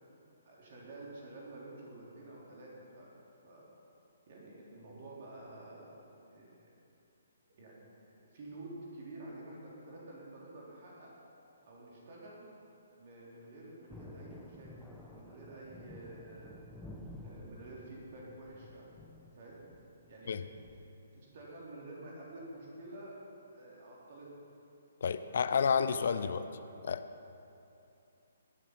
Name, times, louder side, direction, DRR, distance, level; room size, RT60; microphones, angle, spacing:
voice 1, 0.4-3.1 3.4-3.7 4.3-6.0 6.3-6.7 7.6-11.1 11.6-12.5 13.0-16.6 17.2-18.9 19.3-19.6 20.1-20.3 21.1-23.2 23.5-24.3, right 2 dB, 40° right, -4 dB, 3.3 m, -49 dB
Thunder, 13.9-20.9, left 1 dB, 5° left, 0.9 m, -52 dB
voice 2, 25.0-26.5 26.8-27.0, left 6 dB, 50° left, 12 dB, 0.6 m, -30 dB
21.0 x 7.4 x 5.7 m, 2.8 s
figure-of-eight pair, 130°, 0 cm